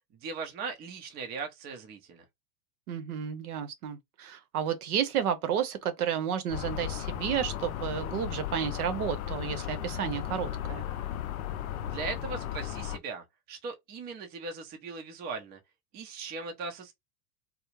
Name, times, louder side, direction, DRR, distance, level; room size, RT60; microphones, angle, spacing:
voice 1, 0.2-2.2 11.8-15.6 15.9-16.9, right 4 dB, 20° right, 0.5 m, -39 dB
voice 2, 2.9-10.9, right 8 dB, 65° right, 0.7 m, -31 dB
sound 1, 6.5-13.0, left 11 dB, 60° left, 0.5 m, -35 dB
2.4 x 2.0 x 3.0 m
hypercardioid pair, 95°, 49 cm